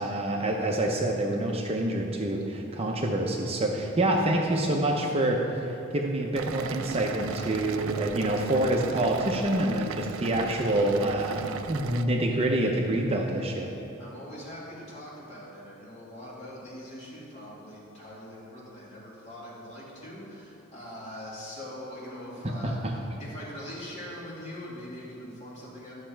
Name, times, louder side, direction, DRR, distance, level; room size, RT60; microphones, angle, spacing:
voice 1, 0.0-13.7 22.6-22.9, right 1 dB, 30° right, 0 dB, 0.6 m, -27 dB
sound 1, 6.3-12.1, right 7 dB, 70° right, 0.3 m, -38 dB
voice 2, 14.0-25.9, equal, 35° left, -7 dB, 2.4 m, -42 dB
11.0 x 6.3 x 4.5 m, 2.8 s
head